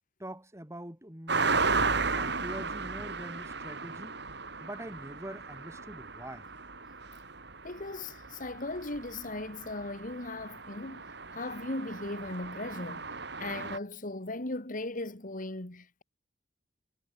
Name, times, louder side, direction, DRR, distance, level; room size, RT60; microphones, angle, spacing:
voice 1, 0.2-4.2 4.6-6.5, right 1 dB, 15° right, 5.7 m, -44 dB
sound 1, 1.3-13.8, right 4 dB, 70° right, 6.6 m, -35 dB
voice 2, 7.6-11.0 11.3-13.1 13.4-16.0, left 2 dB, 45° left, 2.4 m, -38 dB
head